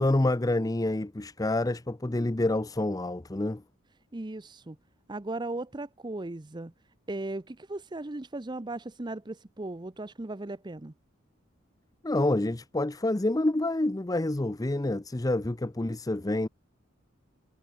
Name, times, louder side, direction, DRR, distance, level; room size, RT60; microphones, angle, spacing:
voice 1, 0.0-3.6 12.0-16.5, left 1 dB, 20° left, 0.6 m, -27 dB
voice 2, 4.1-4.8 5.1-6.7 7.1-10.9, right 2 dB, 20° right, 0.7 m, -37 dB
head